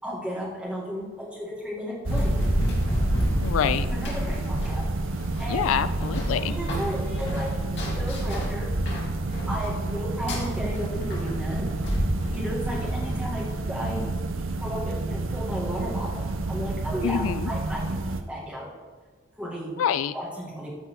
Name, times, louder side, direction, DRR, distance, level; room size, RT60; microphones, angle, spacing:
voice 1, 0.0-2.4 3.9-4.9 5.1-5.7 6.5-9.1 9.5-11.7 12.3-18.7 19.4-19.7 20.1-20.7, equal, 5° right, -5 dB, 2.1 m, -34 dB
sound 1, 2.0-18.2, right 2 dB, 75° right, 0.6 m, -30 dB
Run, 2.1-13.4, equal, 55° left, 2.4 m, -30 dB
voice 2, 3.4-3.9 5.5-6.5 17.0-17.5 19.8-20.1, left 8 dB, 85° left, 14 dB, 0.3 m, -26 dB
14.0 x 4.7 x 4.7 m, 1.4 s
head